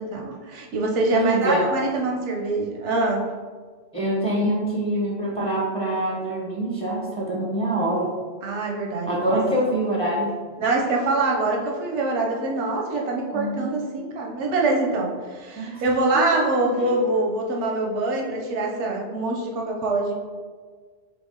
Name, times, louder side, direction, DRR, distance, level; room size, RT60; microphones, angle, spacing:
voice 1, 0.0-3.2 8.4-9.4 10.6-20.1, right 2 dB, 90° right, 0 dB, 1.0 m, -24 dB
voice 2, 1.1-1.7 3.9-8.1 9.1-10.3 13.3-13.7 15.6-15.8 16.1-16.2 16.8-16.9, right 1 dB, 5° left, -5 dB, 0.6 m, -25 dB
4.1 x 3.4 x 3.7 m, 1.5 s
omnidirectional pair, 1.2 m